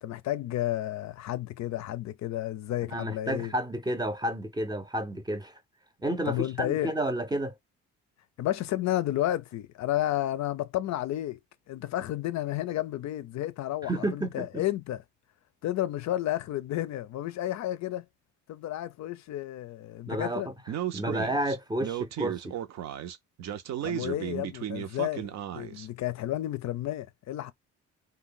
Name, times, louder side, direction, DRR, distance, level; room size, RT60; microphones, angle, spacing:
voice 1, 0.0-3.5 6.3-6.9 8.4-11.4 11.7-15.0 15.6-18.0 18.5-20.5 23.8-25.3 25.5-27.5, left 13 dB, 65° left, 0.5 m, -31 dB
voice 2, 2.9-5.6 6.0-7.5 13.8-14.6 20.1-20.4 20.9-22.5, right 1 dB, 15° right, 0.6 m, -31 dB
Speech, 20.7-25.9, right 10 dB, 65° right, 0.6 m, -35 dB
2.6 x 2.2 x 3.8 m
cardioid pair, 90°, 30 cm